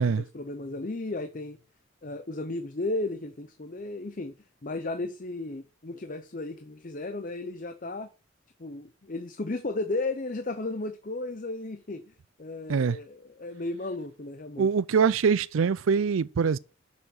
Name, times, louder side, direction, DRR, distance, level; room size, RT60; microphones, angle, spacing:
voice 1, 0.0-1.6 2.0-4.3 4.6-8.1 8.6-12.1 12.4-14.7, left 2 dB, 40° left, 0.7 m, -34 dB
voice 2, 14.6-16.6, right 6 dB, 80° right, 0.4 m, -23 dB
7.0 x 6.3 x 7.2 m
head